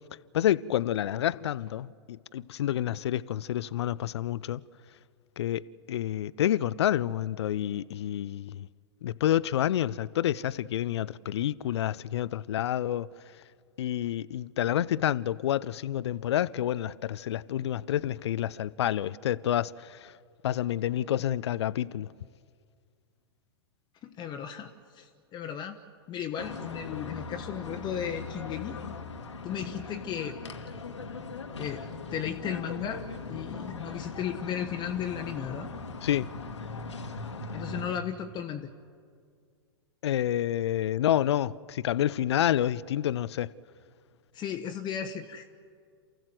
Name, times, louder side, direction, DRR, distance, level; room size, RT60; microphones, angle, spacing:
voice 1, 0.3-4.6 5.4-8.7 9.0-13.1 13.8-20.1 20.4-22.1 36.0-36.3 40.0-43.5, left 11 dB, 70° left, 0.5 m, -28 dB
voice 2, 24.0-25.8 26.1-28.8 29.4-30.4 31.6-31.8 32.1-33.0 33.3-35.7 37.5-38.7 44.3-45.5, left 9 dB, 30° left, 1.1 m, -35 dB
sound 1, 26.4-38.0, left 4 dB, 85° left, 1.5 m, -39 dB
28.0 x 15.5 x 7.7 m
hypercardioid pair, 100°, 15 cm